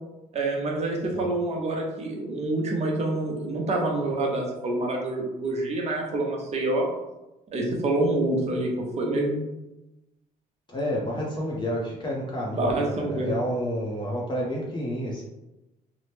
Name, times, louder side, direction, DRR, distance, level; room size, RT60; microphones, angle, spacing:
voice 1, 0.3-6.9 7.5-8.7 9.0-9.4 12.5-13.3, right 2 dB, 40° right, 0 dB, 0.7 m, -27 dB
voice 2, 10.7-15.2, equal, 25° left, -4 dB, 0.6 m, -30 dB
2.9 x 2.0 x 3.3 m, 0.97 s
cardioid pair, 110°, 17 cm